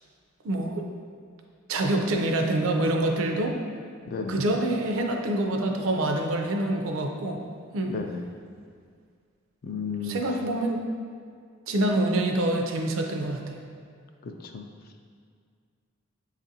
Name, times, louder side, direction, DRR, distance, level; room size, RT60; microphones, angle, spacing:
voice 1, 0.4-0.9 1.7-3.6 4.3-7.4 7.7-7.9 10.0-10.8 11.7-13.5, right 1 dB, 75° right, 3 dB, 0.4 m, -26 dB
voice 2, 4.1-4.4 7.9-8.2 9.6-10.2 14.2-14.7, left 4 dB, 50° left, 5 dB, 0.3 m, -33 dB
6.4 x 2.4 x 2.7 m, 2.1 s
head